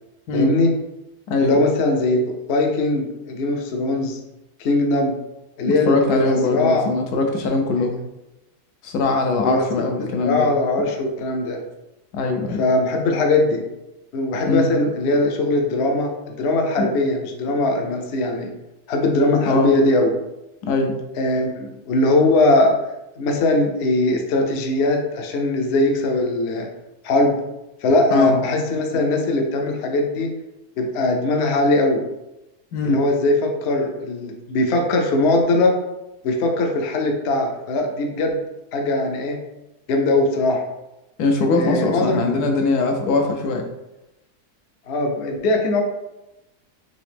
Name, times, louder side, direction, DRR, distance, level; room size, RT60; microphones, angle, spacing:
voice 1, 0.3-0.7 1.4-4.2 4.6-5.2 5.6-6.9 9.4-11.6 12.6-13.6 14.1-18.5 18.9-20.1 21.2-22.7 23.2-26.7 27.0-27.4 27.8-30.3 30.8-32.0 32.8-35.7 36.2-38.4 38.7-39.4 39.9-40.6 41.6-42.2 44.9-45.8, left 2 dB, 60° left, 2 dB, 0.7 m, -20 dB
voice 2, 5.6-7.9 8.8-10.5 12.1-12.6 14.5-14.7 16.8-16.9 19.5-19.7 20.6-20.9 28.1-28.4 32.7-33.0 41.2-43.6, left 3 dB, 80° left, 3 dB, 1.2 m, -21 dB
3.9 x 2.8 x 3.3 m, 0.93 s
omnidirectional pair, 1.6 m